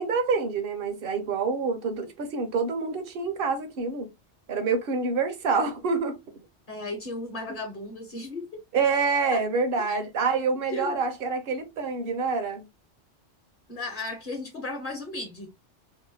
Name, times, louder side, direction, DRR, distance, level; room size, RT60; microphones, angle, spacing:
voice 1, 0.0-4.1 4.5-6.2 8.7-12.6, right 4 dB, 60° right, 0.8 m, -27 dB
voice 2, 6.7-8.6 9.3-9.4 9.9-10.0 10.7-11.1 13.7-15.5, left 2 dB, 50° left, 0.9 m, -35 dB
2.8 x 2.1 x 2.6 m
omnidirectional pair, 1.2 m